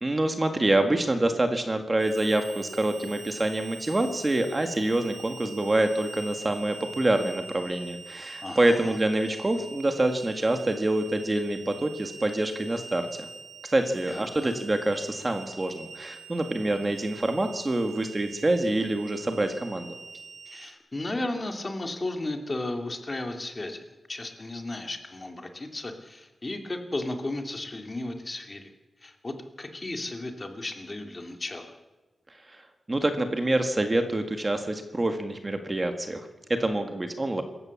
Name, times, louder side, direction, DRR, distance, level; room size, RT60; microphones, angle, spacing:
voice 1, 0.0-13.3 13.7-19.9 32.5-32.6 32.9-37.4, right 1 dB, 20° right, 6 dB, 1.8 m, -26 dB
Harmonica, 2.0-20.7, right 5 dB, 70° right, 4.3 m, -44 dB
voice 2, 8.4-9.0 14.0-14.5 20.5-28.7 29.0-31.8, left 2 dB, 25° left, 5 dB, 2.4 m, -35 dB
27.0 x 15.0 x 7.3 m, 1.2 s
wide cardioid pair, 155°, 0 cm